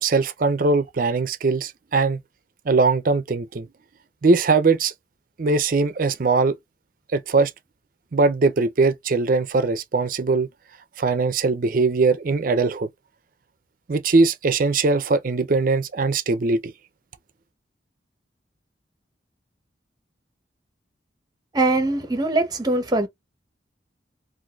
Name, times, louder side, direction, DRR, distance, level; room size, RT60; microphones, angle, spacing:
voice 1, 0.0-2.2 2.7-3.7 4.2-4.9 5.4-6.6 7.1-7.5 8.1-10.5 11.0-12.9 13.9-16.7, right 3 dB, 50° right, 0.5 m, -21 dB
voice 2, 21.5-23.1, right 2 dB, 20° right, 0.8 m, -22 dB
3.8 x 2.5 x 2.3 m
head